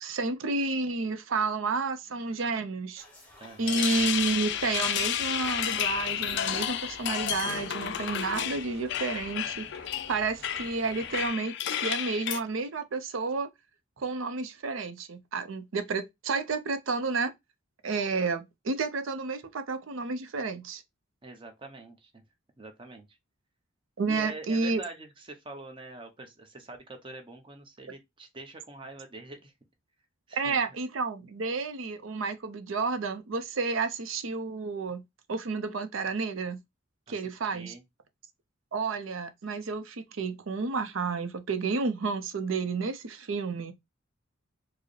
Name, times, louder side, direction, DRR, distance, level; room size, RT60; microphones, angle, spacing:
voice 1, 0.0-3.0 3.6-9.7 10.1-13.5 14.0-17.3 17.8-20.8 24.0-24.8 30.3-35.0 35.3-36.6 37.1-37.7 38.7-43.7, right 4 dB, 70° right, 0.5 m, -31 dB
sound 1, 3.0-8.2, left 1 dB, 5° left, 0.9 m, -54 dB
sound 2, 3.4-12.4, left 10 dB, 55° left, 0.3 m, -31 dB
voice 2, 3.4-3.9 21.2-22.2 22.6-23.2 24.1-29.5 30.3-30.6 37.1-37.2 37.4-37.8, right 2 dB, 25° right, 0.7 m, -45 dB
sound 3, 3.9-11.3, right 1 dB, 50° right, 1.0 m, -50 dB
4.6 x 2.0 x 3.1 m
head